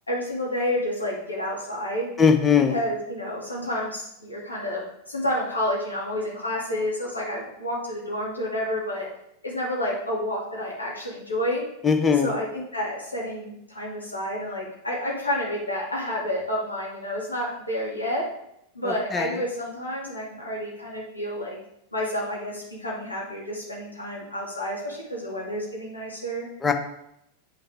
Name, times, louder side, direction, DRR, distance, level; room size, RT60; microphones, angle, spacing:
voice 1, 0.1-2.1 2.7-9.1 9.4-11.6 12.2-18.3 18.7-21.6 21.9-26.5, left 1 dB, 80° left, -4 dB, 2.4 m, -30 dB
voice 2, 2.2-2.8 11.8-12.3 18.8-19.4 26.6-26.7, left 6 dB, 15° left, 6 dB, 0.9 m, -20 dB
9.0 x 5.6 x 3.5 m, 0.79 s
figure-of-eight pair, 90°, 0 cm